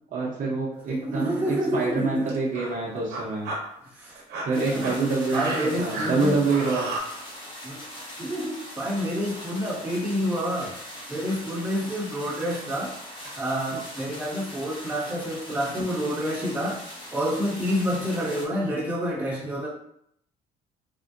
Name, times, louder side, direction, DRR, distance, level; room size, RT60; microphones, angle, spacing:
voice 1, 0.1-3.5 4.4-6.9, right 3 dB, 50° right, -5 dB, 0.8 m, -26 dB
sound 1, 0.7-1.0 1.9-2.0 2.3-2.7 3.1-3.6 4.1-7.0, right 2 dB, 80° right, 0.8 m, -33 dB
voice 2, 0.9-2.3 3.8-4.2 4.5-4.9 5.3-6.4 7.6-7.8 8.2-10.7 11.1-13.0 13.4-19.7, equal, 10° right, -6 dB, 1.3 m, -28 dB
sound 2, 4.5-18.5, left 1 dB, 30° left, 1.1 m, -41 dB
3.4 x 2.6 x 2.5 m, 0.72 s
cardioid pair, 110°, 17 cm